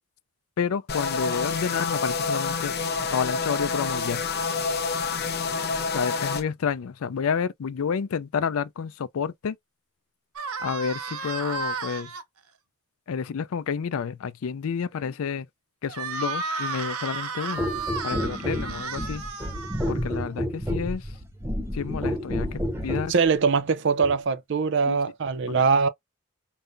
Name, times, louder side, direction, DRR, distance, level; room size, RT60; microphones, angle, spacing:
voice 1, 0.6-2.7 3.1-4.2 5.9-9.6 10.6-12.1 13.1-15.5 15.8-17.7 18.0-19.2 19.9-21.1 21.7-23.1 24.9-25.0 25.5-25.7, left 6 dB, 75° left, 0.4 m, -30 dB
sound 1, 0.9-6.4, left 4 dB, 45° left, 0.7 m, -28 dB
sound 2, 10.4-12.2 15.9-20.2, right 4 dB, 85° right, 0.8 m, -33 dB
sound 3, 17.6-23.2 24.0-24.2, equal, 10° right, 0.7 m, -30 dB
voice 2, 23.1-25.9, right 5 dB, 55° right, 0.4 m, -22 dB
5.3 x 2.1 x 2.5 m
head